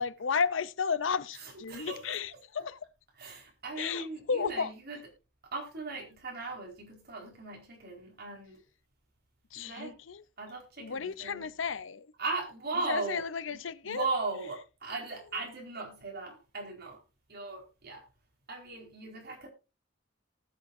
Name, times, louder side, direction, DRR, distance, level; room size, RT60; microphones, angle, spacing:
voice 1, 0.0-2.8 3.8-4.7 9.5-10.2 10.8-12.1 12.9-14.1, left 5 dB, 85° left, 0.7 m, -33 dB
voice 2, 1.3-2.2 3.2-5.0 5.5-8.6 9.5-10.0 10.4-11.5 12.2-13.2 13.5-17.0 17.3-18.0 18.5-19.5, right 3 dB, 55° right, 4.6 m, -38 dB
19.0 x 7.4 x 2.7 m
head